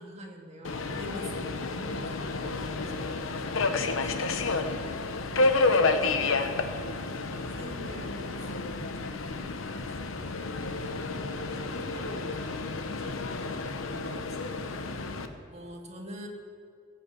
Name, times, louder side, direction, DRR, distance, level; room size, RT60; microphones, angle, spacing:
voice 1, 0.0-2.7 5.5-6.2 7.6-8.5 10.7-11.3 15.5-16.3, equal, 35° right, 1 dB, 1.7 m, -44 dB
Subway metro underground, 0.6-15.3, left 3 dB, 80° left, 0.8 m, -30 dB
voice 2, 2.7-5.1 8.5-10.1 10.8-10.9 11.5-12.5 12.9-14.8, left 1 dB, 35° left, 3 dB, 1.2 m, -48 dB
16.5 x 5.9 x 7.6 m, 2.4 s
head